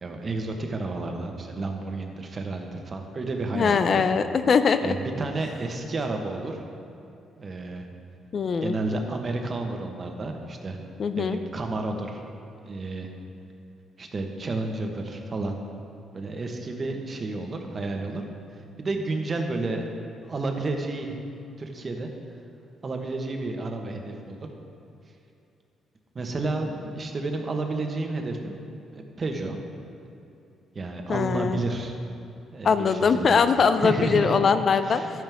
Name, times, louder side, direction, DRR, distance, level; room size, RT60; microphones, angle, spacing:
voice 1, 0.0-4.1 4.8-6.6 7.4-7.9 8.6-10.8 11.2-12.2 12.6-13.1 14.0-15.6 16.1-19.9 20.2-21.2 21.6-22.1 22.8-24.5 26.1-28.6 28.9-29.6 30.7-31.9 32.5-33.4 33.8-34.4 34.8-35.1, right 2 dB, 40° right, 3 dB, 1.3 m, -31 dB
voice 2, 3.6-4.9 8.3-8.7 11.0-11.4 31.1-31.6 32.6-35.0, left 5 dB, 50° left, 10 dB, 0.5 m, -22 dB
12.0 x 9.2 x 3.6 m, 2.7 s
cardioid pair, 90°, 0 cm